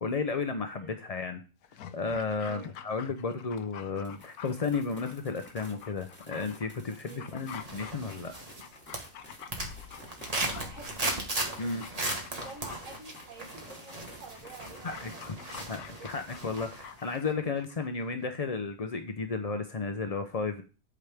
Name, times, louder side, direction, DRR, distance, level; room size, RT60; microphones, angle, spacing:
voice 1, 0.0-1.4 1.9-8.3 11.6-11.8 14.8-15.1 15.7-20.6, left 4 dB, 50° left, 7 dB, 0.4 m, -33 dB
Dog, 1.6-17.9 18.2-18.3, left 8 dB, 80° left, 1.2 m, -48 dB
sound 1, 4.0-14.6, equal, 5° left, 2.4 m, -53 dB
sound 2, 7.5-8.7 8.9-16.9 17.3-17.4, right 2 dB, 25° right, 1.5 m, -37 dB
voice 2, 10.5-11.1 11.5-11.7 12.3-15.4 16.0-16.1, right 4 dB, 55° right, 0 dB, 1.7 m, -49 dB
8.5 x 7.9 x 3.5 m, 0.34 s
omnidirectional pair, 1.6 m